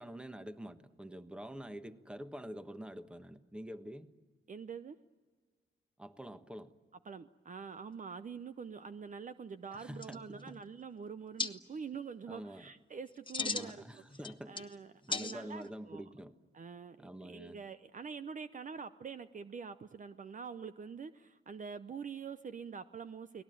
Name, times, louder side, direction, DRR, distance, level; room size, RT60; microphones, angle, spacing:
voice 1, 0.0-4.1 6.0-6.7 9.7-10.6 12.3-12.7 13.4-14.6 15.0-16.3 17.0-17.6, equal, 5° right, 10 dB, 1.2 m, -46 dB
voice 2, 4.5-5.0 7.0-14.0 14.5-16.0 16.5-23.4, right 6 dB, 40° right, 11 dB, 0.7 m, -45 dB
sound 1, 9.7-9.8 10.0-10.6 11.4-11.5 13.1-13.7 14.1-14.8 15.1-15.7, left 4 dB, 25° left, 1.2 m, -37 dB
30.0 x 19.5 x 9.2 m, 1.5 s
cardioid pair, 105°, 20 cm